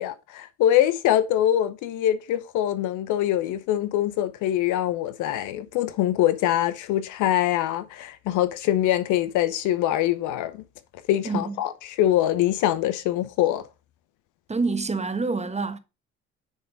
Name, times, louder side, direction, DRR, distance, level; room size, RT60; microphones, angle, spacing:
voice 1, 0.0-10.6 11.1-11.7 12.0-13.6, left 12 dB, 85° left, 0.8 m, -23 dB
voice 2, 11.2-11.6 14.5-15.8, right 3 dB, 20° right, 1.2 m, -27 dB
9.9 x 3.6 x 5.0 m
supercardioid pair, 70°, 30 cm